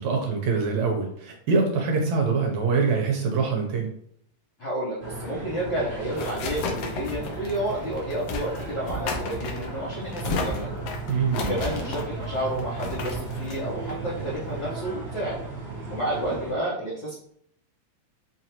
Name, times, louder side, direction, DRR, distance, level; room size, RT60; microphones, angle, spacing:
voice 1, 0.0-3.9 11.1-11.5, right 4 dB, 75° right, 1 dB, 1.8 m, -24 dB
voice 2, 4.6-10.7 11.3-15.4 15.9-17.2, right 1 dB, 65° left, -8 dB, 1.2 m, -30 dB
sound 1, 5.0-16.5, right 3 dB, 40° right, 0.9 m, -35 dB
sound 2, 5.5-14.8, left 3 dB, 80° left, 1.4 m, -34 dB
4.9 x 2.6 x 2.9 m, 0.67 s
omnidirectional pair, 3.4 m